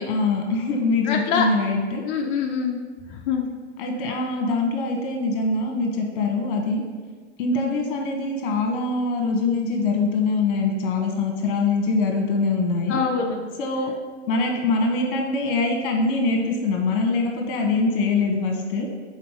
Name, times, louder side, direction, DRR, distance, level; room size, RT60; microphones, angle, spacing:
voice 1, 0.0-2.0 3.8-6.8 7.4-13.0 13.6-13.9 14.3-18.9, left 3 dB, 50° left, 1 dB, 1.1 m, -23 dB
voice 2, 1.0-1.5 2.0-2.8 3.1-3.5 7.6-7.7 12.9-13.4, left 6 dB, 20° left, 0 dB, 0.3 m, -24 dB
5.8 x 4.3 x 4.8 m, 1.5 s
hypercardioid pair, 120°, 36 cm